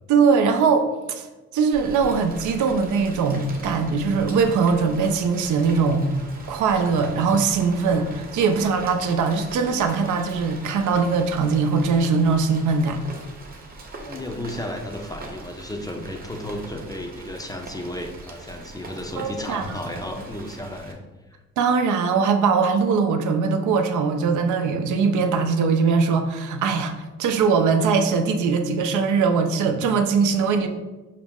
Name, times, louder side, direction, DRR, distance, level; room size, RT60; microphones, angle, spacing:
voice 1, 0.1-1.3 1.5-6.1 6.5-13.0 19.2-19.8 21.6-30.7, right 5 dB, 75° right, 5 dB, 0.5 m, -21 dB
Rain, 1.7-20.9, right 2 dB, 30° right, 0.8 m, -41 dB
voice 2, 14.0-21.0, left 1 dB, 10° left, 4 dB, 0.5 m, -33 dB
5.7 x 2.1 x 3.5 m, 1.2 s
cardioid pair, 90°, 30 cm